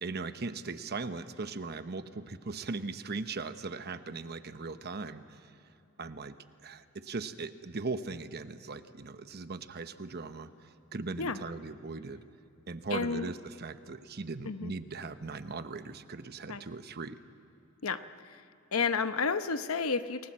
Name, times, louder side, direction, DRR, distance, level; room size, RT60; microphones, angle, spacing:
voice 1, 0.0-5.5 6.0-6.4 6.6-12.2 12.7-17.2, right 3 dB, 50° right, 10 dB, 0.9 m, -39 dB
voice 2, 12.9-13.3 14.4-14.7 16.5-16.6 17.8-18.4 18.7-20.3, left 5 dB, 80° left, 10 dB, 0.9 m, -31 dB
29.0 x 20.0 x 7.5 m, 3.0 s
head